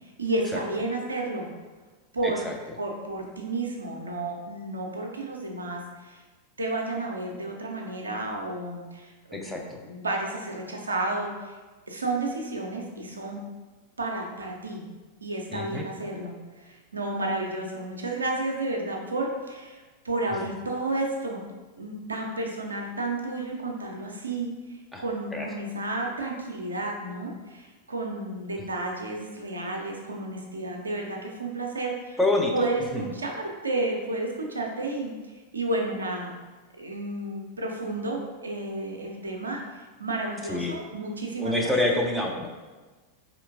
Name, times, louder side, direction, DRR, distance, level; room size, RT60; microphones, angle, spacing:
voice 1, 0.0-1.5 2.1-2.4 2.8-6.2 6.6-11.5 11.9-13.4 14.0-14.8 15.2-21.4 21.8-32.2 32.5-35.1 35.5-36.4 36.8-41.7, right 2 dB, 75° right, 0 dB, 0.5 m, -32 dB
voice 2, 2.2-2.5 9.3-9.8 15.5-15.9 24.9-25.0 25.3-25.5 28.6-28.7 32.2-32.7 32.9-33.0 40.5-40.8 41.4-42.5, left 2 dB, ahead, -1 dB, 0.5 m, -27 dB
4.3 x 2.8 x 2.6 m, 1.3 s
figure-of-eight pair, 90°, 0 cm